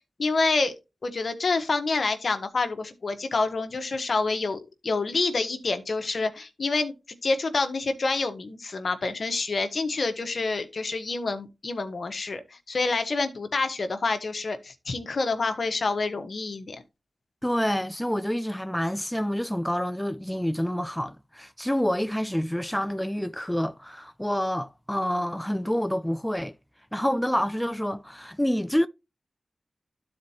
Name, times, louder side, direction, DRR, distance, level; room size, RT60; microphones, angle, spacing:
voice 1, 0.2-0.7 1.0-6.9 7.2-16.8, left 3 dB, 65° left, 1.1 m, -27 dB
voice 2, 17.4-26.5 26.9-28.9, equal, 5° left, 0.4 m, -27 dB
12.5 x 4.4 x 2.8 m
cardioid pair, 50°, 0 cm